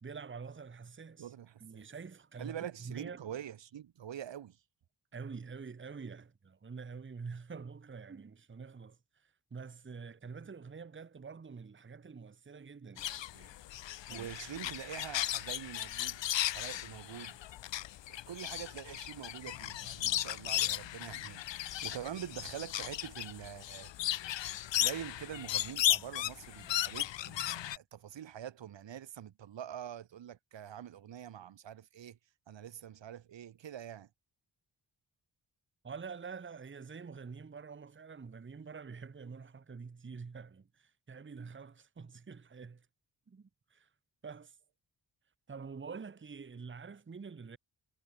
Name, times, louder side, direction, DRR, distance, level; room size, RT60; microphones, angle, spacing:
voice 1, 0.0-1.3 1.6-3.3 5.1-9.0 9.5-13.6 14.1-14.3 35.8-42.8 43.3-43.9 44.2-44.5 45.5-47.6, right 5 dB, 25° right, 0.9 m, -46 dB
voice 2, 1.2-1.8 2.4-4.6 14.1-16.2 16.5-17.4 18.1-21.4 21.8-23.9 24.8-32.2 32.5-34.1, right 10 dB, 80° right, 1.1 m, -45 dB
sound 1, 13.0-27.8, left 13 dB, 75° left, 0.6 m, -36 dB
cardioid pair, 65°, 44 cm